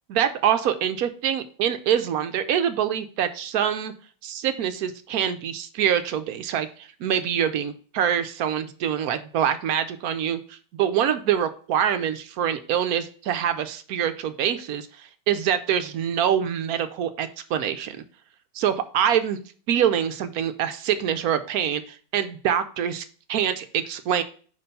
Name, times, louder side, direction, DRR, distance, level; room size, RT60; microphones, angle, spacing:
voice 1, 0.1-3.9 4.2-18.0 18.5-19.4 19.7-24.2, right 9 dB, 70° right, 10 dB, 1.0 m, -25 dB
5.3 x 4.3 x 5.3 m, 0.42 s
omnidirectional pair, 1.8 m